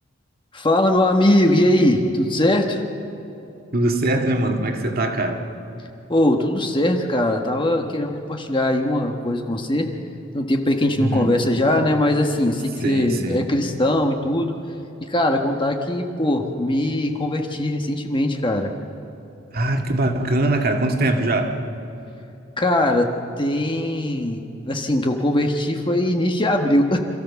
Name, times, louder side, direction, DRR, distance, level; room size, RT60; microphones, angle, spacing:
voice 1, 0.5-2.8 6.1-9.9 10.3-14.6 15.0-18.7 22.6-23.1 23.4-24.4 24.6-27.0, left 1 dB, 25° left, 3 dB, 1.3 m, -20 dB
voice 2, 3.7-5.4 10.9-11.3 12.8-13.4 19.5-21.6, right 2 dB, 50° right, 4 dB, 2.0 m, -22 dB
27.0 x 14.5 x 7.0 m, 2.9 s
head